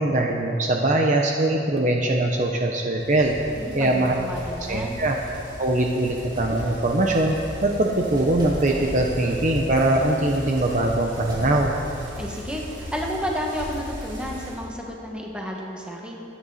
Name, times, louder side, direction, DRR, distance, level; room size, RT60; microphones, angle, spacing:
voice 1, 0.0-3.3 3.7-4.1 4.7-5.2 5.6-7.3 7.6-11.7, right 1 dB, 40° right, 1 dB, 0.9 m, -22 dB
Bicycle, 3.0-14.6, equal, 25° right, 3.3 m, -37 dB
voice 2, 3.6-5.0 12.2-16.2, equal, 5° right, -2 dB, 1.6 m, -31 dB
23.5 x 9.3 x 4.2 m, 2.7 s
head